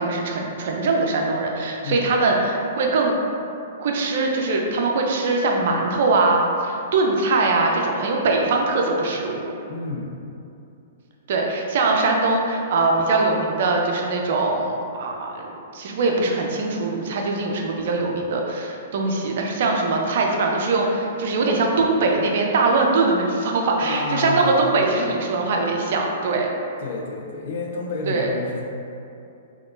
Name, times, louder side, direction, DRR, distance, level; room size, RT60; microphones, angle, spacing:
voice 1, 0.0-3.1 3.8-9.5 11.3-15.4 15.7-26.5 28.1-28.3, right 3 dB, 60° right, 1 dB, 0.4 m, -22 dB
voice 2, 9.7-10.2 23.8-24.8 26.8-28.6, left 3 dB, 60° left, -1 dB, 0.5 m, -29 dB
3.4 x 2.4 x 2.5 m, 2.7 s
hypercardioid pair, 120°, 0 cm